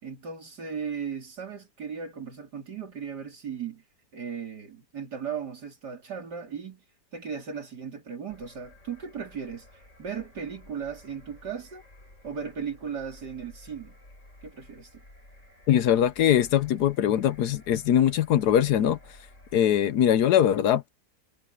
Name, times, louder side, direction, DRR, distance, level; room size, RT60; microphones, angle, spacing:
voice 1, 0.0-3.8 4.1-6.8 7.1-11.8 12.2-13.9 14.4-15.0, right 7 dB, 65° right, 3.9 m, -37 dB
sound 1, 8.3-19.6, left 1 dB, 40° left, 7.2 m, -53 dB
voice 2, 15.7-19.0 19.5-20.9, left 10 dB, 70° left, 1.2 m, -22 dB
omnidirectional pair, 1.9 m